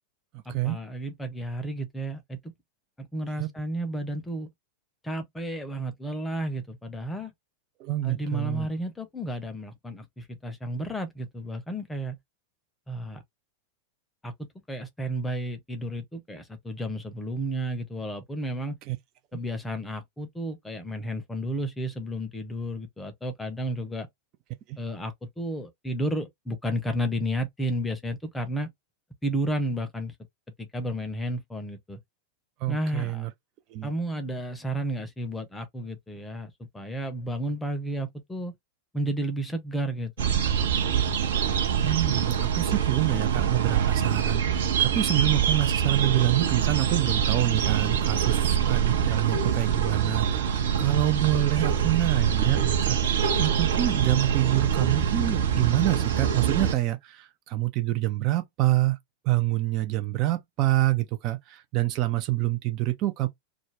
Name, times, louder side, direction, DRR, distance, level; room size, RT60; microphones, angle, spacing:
voice 1, 0.5-2.4 3.0-4.5 5.0-7.3 8.0-12.2 12.9-13.2 14.2-18.8 19.3-24.1 24.8-28.7 29.2-30.1 30.6-32.0 32.7-33.3 33.8-38.5 38.9-40.4, right 1 dB, 10° left, 0.7 m, -32 dB
voice 2, 7.8-8.7 18.9-19.0 19.3-19.4 24.7-24.8 32.6-33.3 33.7-33.9 41.8-59.0 59.2-63.3, right 15 dB, 40° right, 0.4 m, -26 dB
sound 1, 40.2-56.7, right 8 dB, 60° right, 0.8 m, -25 dB
2.5 x 2.2 x 3.2 m
figure-of-eight pair, 90°, 0 cm